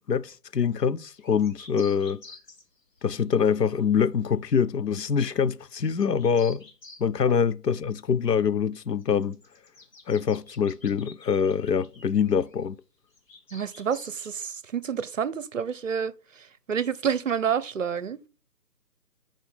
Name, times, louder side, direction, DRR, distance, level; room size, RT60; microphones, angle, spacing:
voice 1, 0.1-2.2 3.0-6.6 7.0-9.4 10.1-12.8, left 7 dB, 90° left, 0.6 m, -24 dB
sound 1, 1.1-4.0 5.7-7.0 9.0-12.6 13.1-14.3, left 3 dB, 55° left, 2.2 m, -50 dB
voice 2, 13.5-16.1 16.7-18.2, right 7 dB, 55° right, 0.6 m, -28 dB
5.4 x 5.2 x 5.2 m
figure-of-eight pair, 150°, 47 cm